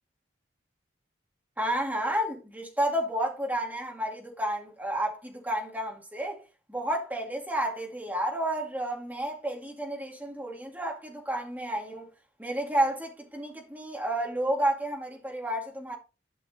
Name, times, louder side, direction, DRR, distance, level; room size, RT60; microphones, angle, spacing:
voice 1, 1.6-6.4 6.7-12.1 12.4-15.9, right 1 dB, 10° right, 2.4 m, -31 dB
12.5 x 6.3 x 3.1 m
head